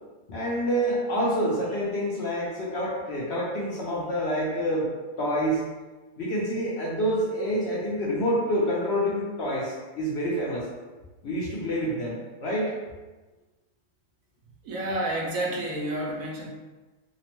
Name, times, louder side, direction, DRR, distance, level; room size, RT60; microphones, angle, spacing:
voice 1, 0.3-4.9 5.2-5.6 6.2-10.7 11.2-12.7, equal, 70° left, -5 dB, 0.6 m, -27 dB
voice 2, 14.6-16.5, right 1 dB, 70° right, -2 dB, 0.9 m, -29 dB
2.9 x 2.1 x 2.9 m, 1.2 s
omnidirectional pair, 1.7 m